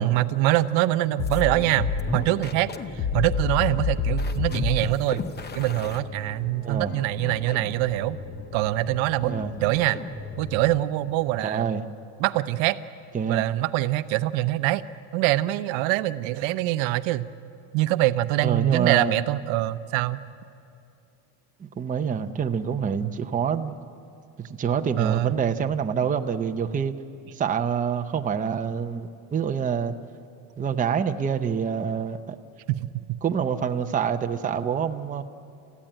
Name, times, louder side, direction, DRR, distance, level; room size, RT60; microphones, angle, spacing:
voice 1, 0.0-2.7 2.9-5.2 5.5-8.2 8.5-9.3 9.6-10.0 10.4-11.7 12.2-12.8 13.3-14.8 15.1-17.3 17.7-20.2 23.0-23.2 25.0-25.4 32.8-32.9, right 16 dB, 70° right, 12 dB, 0.8 m, -24 dB
sound 1, 1.2-10.9, left 4 dB, 20° left, 0.8 m, -31 dB
voice 2, 9.2-9.5 11.4-11.8 13.1-13.5 18.4-19.2 21.6-23.8 24.4-26.9 27.3-29.9 30.6-32.4 33.2-35.2, right 7 dB, 15° right, 6 dB, 0.7 m, -26 dB
30.0 x 15.0 x 9.0 m, 2.6 s
cardioid pair, 145°, 49 cm